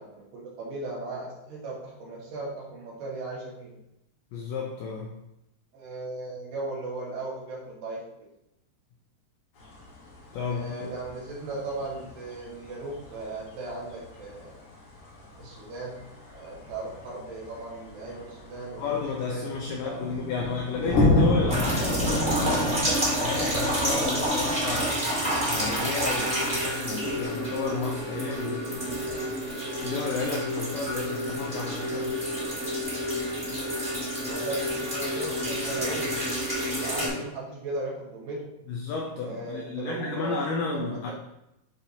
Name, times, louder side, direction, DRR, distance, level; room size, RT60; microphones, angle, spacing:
voice 1, 0.0-3.8 5.7-8.3 10.5-14.6 15.4-16.0 16.3-18.8 19.3-20.0 20.4-20.5 34.2-36.2 36.6-38.5 39.2-41.1, right 2 dB, 80° right, -5 dB, 4.0 m, -37 dB
voice 2, 4.3-5.2 10.3-10.9 18.8-24.9 25.5-28.8 29.8-32.2 38.7-41.1, left 4 dB, 80° left, 0 dB, 1.9 m, -32 dB
sound 1, 9.6-22.8, left 1 dB, 55° left, 2.7 m, -31 dB
sound 2, 21.5-37.1, equal, 15° right, 1.9 m, -29 dB
10.0 x 4.6 x 2.8 m, 0.85 s
omnidirectional pair, 4.6 m